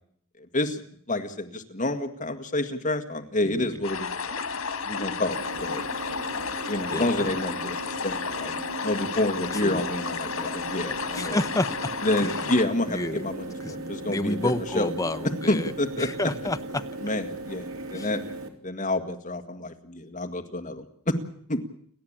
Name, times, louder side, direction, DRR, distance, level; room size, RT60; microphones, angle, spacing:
voice 1, 1.1-4.4 4.9-5.8 6.7-11.4 12.0-14.9 15.5-16.1 17.0-18.2 18.6-21.2 21.5-21.6, left 1 dB, 35° left, 6 dB, 1.9 m, -29 dB
voice 2, 3.4-3.8 6.9-7.4 9.5-9.8 11.1-11.9 12.2-12.5 12.9-13.3 13.6-15.7 16.0-16.8 17.9-18.1, left 1 dB, 15° left, 9 dB, 0.9 m, -30 dB
sound 1, 3.8-12.7, left 5 dB, 90° left, 2.0 m, -32 dB
sound 2, 5.3-18.5, right 2 dB, 80° right, 3.2 m, -38 dB
29.5 x 12.0 x 8.9 m, 0.64 s
head